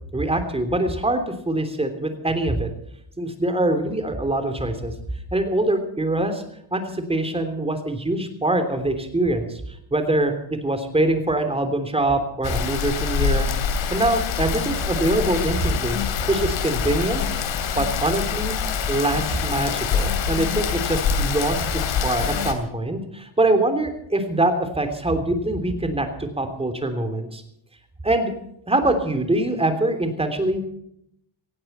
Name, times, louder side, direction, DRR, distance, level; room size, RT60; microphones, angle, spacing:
voice 1, 0.1-2.7 3.2-4.9 5.3-6.4 6.7-6.8 7.1-9.6 9.9-13.5 13.9-16.0 16.3-17.2 17.8-18.5 18.9-27.4 28.0-28.3 28.7-30.6, right 2 dB, 10° right, 7 dB, 3.2 m, -23 dB
Rain, 12.4-22.5, left 6 dB, 70° left, 2.9 m, -25 dB
18.5 x 15.5 x 4.4 m, 0.74 s
cardioid pair, 125°, 48 cm